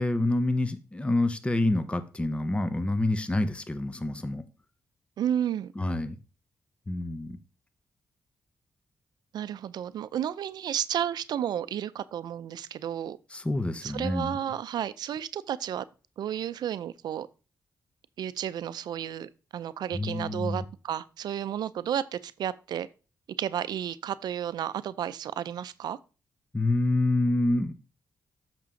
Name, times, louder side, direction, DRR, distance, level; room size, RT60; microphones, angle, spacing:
voice 1, 0.0-4.4 5.8-6.2 6.9-7.4 13.3-14.4 19.9-20.6 26.5-27.7, left 2 dB, 15° left, 0.8 m, -27 dB
voice 2, 5.2-5.7 9.3-13.2 13.8-15.8 16.2-17.3 18.2-22.9 23.4-26.0, right 10 dB, 80° right, 0.4 m, -32 dB
7.3 x 6.0 x 3.7 m
cardioid pair, 90°, 7 cm